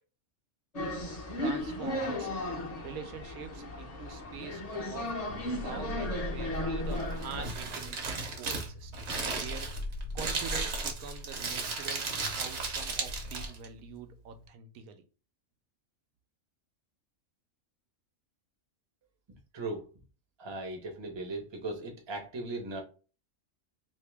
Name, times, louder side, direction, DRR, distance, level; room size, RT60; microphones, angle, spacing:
sound 1, 0.7-7.4, left 1 dB, 35° left, 0.7 m, -35 dB
voice 1, 1.4-2.3 2.8-8.9 9.2-9.7 10.1-15.0, right 7 dB, 85° right, 1.1 m, -45 dB
sound 2, 5.3-13.5, left 1 dB, 80° left, 1.0 m, -40 dB
Crumpling crinkling, 6.9-13.7, right 4 dB, 60° right, 1.0 m, -35 dB
voice 2, 19.5-19.9 20.4-22.8, right 2 dB, 25° right, 0.6 m, -38 dB
2.8 x 2.8 x 3.3 m
omnidirectional pair, 1.4 m